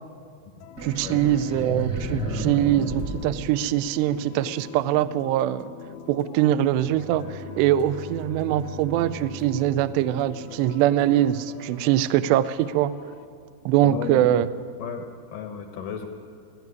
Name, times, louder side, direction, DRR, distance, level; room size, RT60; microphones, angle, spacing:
sound 1, 0.6-13.3, left 9 dB, 90° left, 3.4 m, -44 dB
sound 2, 0.8-4.2, right 2 dB, 35° right, 1.6 m, -31 dB
voice 1, 0.8-5.7 6.1-12.9 13.7-14.5, right 12 dB, 80° right, 14 dB, 2.6 m, -23 dB
Bowed string instrument, 6.6-11.0, left 1 dB, 55° right, 2.9 m, -42 dB
voice 2, 13.8-14.3 14.8-16.1, left 7 dB, 70° left, 5 dB, 2.1 m, -34 dB
23.0 x 14.0 x 9.7 m, 2.3 s
omnidirectional pair, 5.4 m